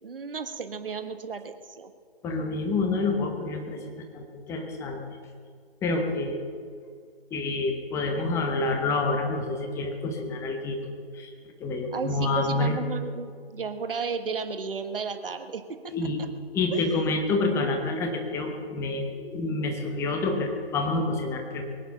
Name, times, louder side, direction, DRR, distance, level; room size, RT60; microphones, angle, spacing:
voice 1, 0.0-1.9 11.9-16.3 16.7-17.1, right 5 dB, 60° right, 8 dB, 1.5 m, -34 dB
voice 2, 2.2-5.0 5.8-6.4 7.3-10.8 11.1-11.3 11.6-12.8 15.9-16.2 16.5-21.6, left 3 dB, 10° left, 4 dB, 1.2 m, -28 dB
22.5 x 9.3 x 5.8 m, 2.2 s
figure-of-eight pair, 140°, 31 cm